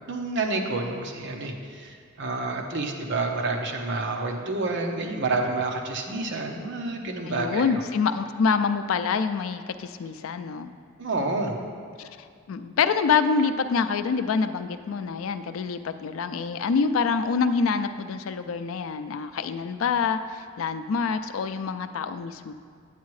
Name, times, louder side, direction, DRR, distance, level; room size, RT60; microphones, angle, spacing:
voice 1, 0.1-7.8 11.0-11.6, right 3 dB, 60° right, 2 dB, 0.9 m, -29 dB
voice 2, 7.2-10.7 12.5-22.5, left 5 dB, 75° left, 10 dB, 0.4 m, -26 dB
9.1 x 8.3 x 3.2 m, 2.2 s
head